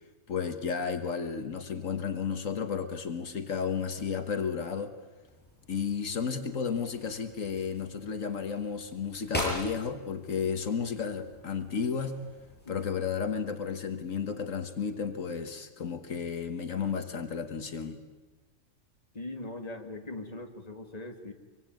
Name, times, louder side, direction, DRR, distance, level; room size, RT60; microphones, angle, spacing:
voice 1, 0.3-4.9 5.7-12.2 12.7-18.0, left 6 dB, 75° left, 7 dB, 1.7 m, -33 dB
sound 1, 5.2-12.9, equal, 5° left, 8.1 m, -42 dB
voice 2, 19.1-21.3, left 2 dB, 30° left, 4 dB, 2.3 m, -40 dB
25.0 x 24.0 x 9.2 m, 1.3 s
omnidirectional pair, 1.4 m